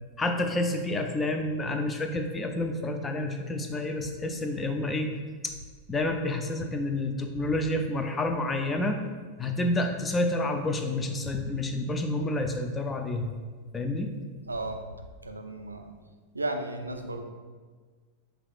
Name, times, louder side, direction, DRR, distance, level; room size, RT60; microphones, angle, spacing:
voice 1, 0.2-5.1 5.4-5.5 5.9-9.0 9.4-13.3 13.7-14.1, left 2 dB, 15° left, 5 dB, 0.3 m, -29 dB
voice 2, 14.5-14.8 15.2-15.9 16.3-17.2, right 2 dB, 80° right, 5 dB, 0.3 m, -34 dB
5.6 x 2.3 x 2.4 m, 1.5 s
figure-of-eight pair, 90°, 0 cm